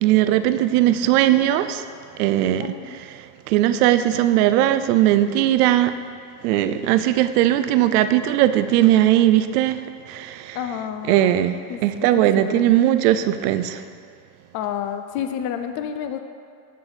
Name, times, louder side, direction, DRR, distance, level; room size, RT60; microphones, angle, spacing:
voice 1, 0.0-1.8 2.2-2.7 3.5-5.9 6.4-9.8 10.1-10.6 11.1-11.6 11.8-13.8, right 13 dB, 70° right, 11 dB, 0.6 m, -18 dB
voice 2, 2.6-3.0 10.5-11.4 11.7-11.8 12.1-12.2 12.5-12.7 14.5-16.2, left 9 dB, 40° left, 8 dB, 0.4 m, -29 dB
9.2 x 3.9 x 4.8 m, 2.3 s
supercardioid pair, 115°, 48 cm